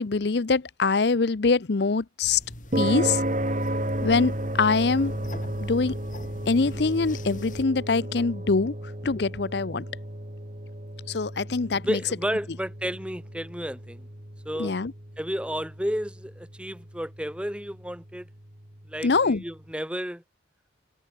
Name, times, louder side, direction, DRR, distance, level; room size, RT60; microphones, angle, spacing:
voice 1, 0.0-2.4 2.8-3.2 4.0-5.1 5.6-6.0 6.5-8.7 9.0-9.8 11.1-12.0 14.6-14.9 19.0-19.4, left 4 dB, 65° left, 0.7 m, -24 dB
sound 1, 2.2-7.6, left 1 dB, 45° left, 7.3 m, -44 dB
sound 2, 2.7-19.2, right 1 dB, 40° right, 3.8 m, -34 dB
voice 2, 11.7-14.1 14.4-14.7 15.2-18.3 18.9-20.2, equal, 5° right, 3.1 m, -32 dB
head